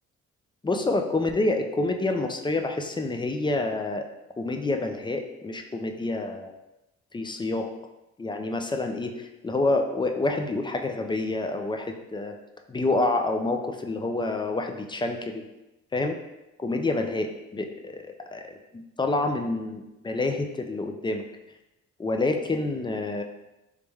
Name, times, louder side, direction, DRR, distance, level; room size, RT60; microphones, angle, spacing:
voice 1, 0.6-4.1 4.4-6.5 7.1-7.7 8.2-12.3 12.7-15.4 15.9-16.2 16.6-17.3 17.5-18.0 18.3-21.2 22.0-23.2, left 2 dB, 15° left, 4 dB, 0.4 m, -28 dB
3.2 x 3.0 x 3.4 m, 0.96 s
cardioid pair, 90°, 30 cm